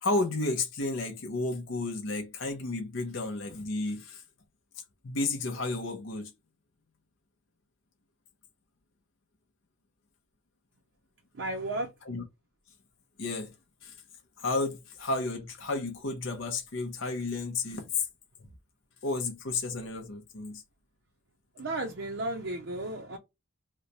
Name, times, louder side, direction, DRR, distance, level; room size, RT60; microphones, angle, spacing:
voice 1, 0.0-4.2 5.0-6.3 12.1-12.2 13.2-13.5 13.8-14.0 14.4-18.1 18.4-18.5 19.0-20.6, left 3 dB, 65° left, 0.7 m, -32 dB
voice 2, 11.3-11.9 21.6-23.2, right 2 dB, 60° right, 0.5 m, -34 dB
3.1 x 2.1 x 3.9 m
head